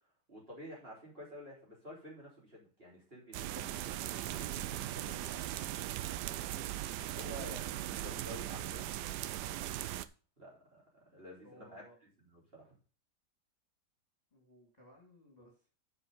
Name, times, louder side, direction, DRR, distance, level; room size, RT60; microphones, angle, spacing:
voice 1, 0.3-5.5 6.2-6.6 7.1-8.9 9.4-9.6 10.4-10.8 11.1-11.8 12.3-12.7, equal, 30° right, -4 dB, 4.0 m, -51 dB
sound 1, 3.3-10.1, right 13 dB, 75° right, 1.1 m, -39 dB
voice 2, 6.8-7.2 11.4-11.9 14.3-15.7, equal, 20° left, -1 dB, 2.9 m, -60 dB
7.4 x 6.5 x 5.4 m, 0.36 s
omnidirectional pair, 1.9 m